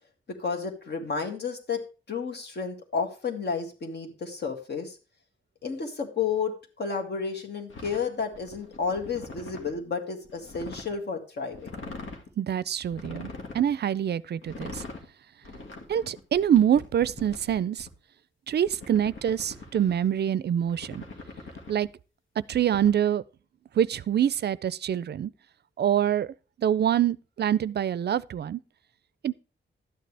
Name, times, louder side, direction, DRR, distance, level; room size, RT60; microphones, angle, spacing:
voice 1, 0.3-1.8 2.1-5.0 5.6-11.7, left 5 dB, 60° left, 2.1 m, -31 dB
sound 1, 7.7-9.8 10.2-10.9 11.5-12.3 12.9-13.7 14.4-15.1 15.4-17.9 18.7-20.1 20.6-21.9 22.5-22.9, left 3 dB, 90° left, 2.0 m, -42 dB
voice 2, 12.4-13.3 13.5-14.8 15.9-17.9 18.5-21.0 21.7-21.9 22.5-23.2 23.8-25.3 25.8-26.3 26.6-28.6 29.2-29.4, right 9 dB, 60° right, 0.4 m, -25 dB
12.5 x 9.3 x 3.4 m
wide cardioid pair, 170°, 20 cm